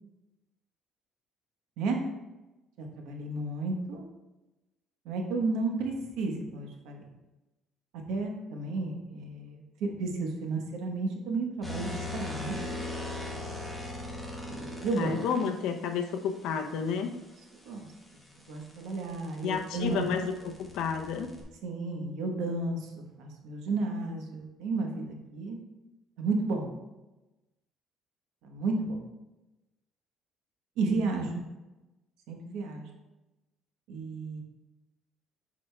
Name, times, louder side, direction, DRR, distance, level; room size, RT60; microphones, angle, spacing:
voice 1, 2.8-4.0 5.0-7.0 8.1-12.6 14.5-15.1 17.6-17.9 18.4-20.1 21.6-25.6 26.2-26.7 28.4-29.0 30.8-31.3 32.3-32.9 33.9-34.4, right 3 dB, 85° right, 2 dB, 1.1 m, -32 dB
sound 1, 11.6-15.5 17.8-21.4, left 2 dB, 5° left, 1.0 m, -39 dB
voice 2, 15.0-17.1 19.4-21.3, left 6 dB, 75° left, 4 dB, 0.7 m, -31 dB
8.3 x 5.0 x 2.3 m, 1.0 s
cardioid pair, 155°, 0 cm